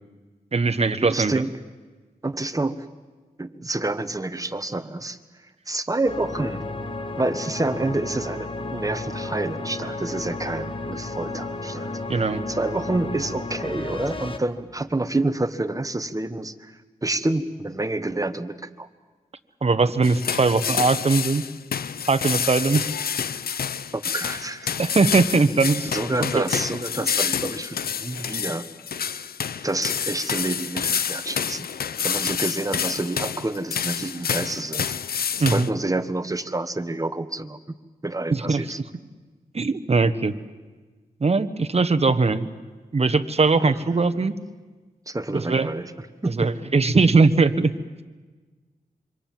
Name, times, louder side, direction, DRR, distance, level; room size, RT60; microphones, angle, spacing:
voice 1, 0.5-1.3 12.1-12.4 19.6-21.4 22.1-22.9 24.8-25.9 26.2-26.4 35.4-35.7 38.3-38.6 39.5-40.3 41.2-42.5 42.9-44.3 45.3-45.7 46.3-47.7, right 4 dB, 45° right, 12 dB, 1.3 m, -20 dB
voice 2, 1.0-1.5 2.2-2.8 3.4-5.2 5.7-6.6 7.2-18.9 23.9-24.8 25.8-28.7 29.6-31.7 32.0-34.9 35.5-37.6 38.0-38.8 43.6-44.3 45.1-46.4, right 2 dB, 20° right, 11 dB, 1.4 m, -28 dB
sound 1, 6.1-14.4, left 2 dB, 35° left, 1.8 m, -33 dB
sound 2, 20.0-35.7, left 7 dB, 85° left, 0.7 m, -28 dB
26.0 x 25.0 x 7.7 m, 1.3 s
wide cardioid pair, 70°, 15 cm